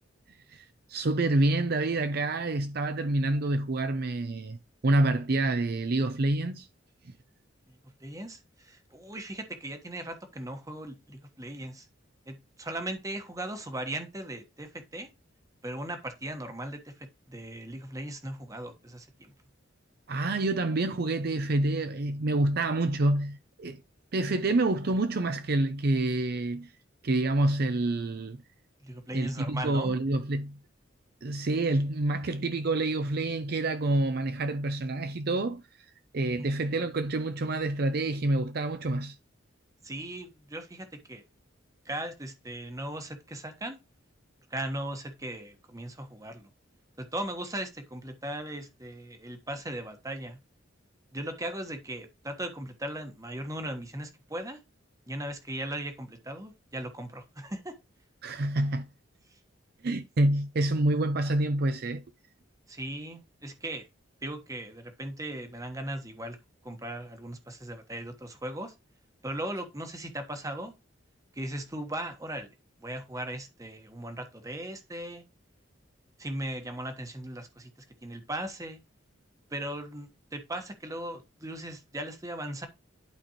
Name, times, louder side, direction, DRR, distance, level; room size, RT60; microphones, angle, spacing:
voice 1, 0.5-4.6 4.8-6.7 20.1-23.8 24.1-26.7 27.0-28.4 29.1-30.6 31.2-35.6 36.1-39.2 58.2-58.9 59.8-62.0, right 2 dB, 50° right, 0.5 m, -27 dB
voice 2, 7.7-11.9 12.3-15.1 15.6-19.3 28.8-30.0 36.4-36.6 39.8-41.2 41.8-43.8 44.5-46.5 47.0-50.4 51.1-54.6 55.1-57.8 59.3-59.4 62.7-63.9 64.2-66.4 66.6-68.7 69.2-70.7 71.3-72.5 72.8-75.2 76.2-77.7 78.0-78.8 79.5-82.7, right 1 dB, 15° right, 1.2 m, -38 dB
11.5 x 4.3 x 3.0 m
head